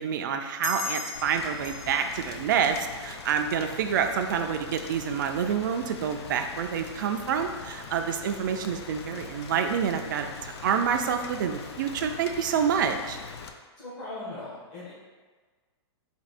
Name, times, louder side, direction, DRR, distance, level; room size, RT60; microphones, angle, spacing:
voice 1, 0.0-13.2, right 7 dB, 45° right, 6 dB, 0.4 m, -28 dB
sound 1, 0.6-3.7, left 4 dB, 85° left, 0.9 m, -39 dB
Rain, 1.2-13.5, left 5 dB, 65° left, 0.5 m, -42 dB
voice 2, 13.8-14.9, left 2 dB, 40° left, -9 dB, 1.4 m, -39 dB
4.4 x 2.8 x 4.1 m, 1.4 s
hypercardioid pair, 170°, 15 cm